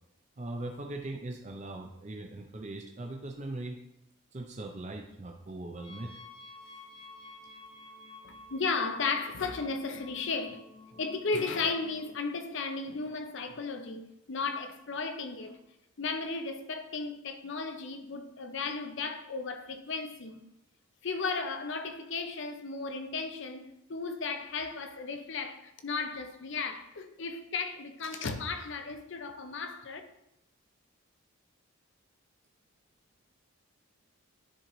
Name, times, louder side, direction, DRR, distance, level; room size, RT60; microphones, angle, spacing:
voice 1, 0.4-3.8 4.3-6.1 6.6-6.7, right 2 dB, 35° right, 0.5 m, -40 dB
sound 1, 5.7-12.2, left 2 dB, 20° left, 0.8 m, -51 dB
voice 2, 8.2-10.6 10.9-15.6 16.0-20.4 21.0-30.0, left 4 dB, 55° left, 0.6 m, -35 dB
10.5 x 3.8 x 3.1 m
head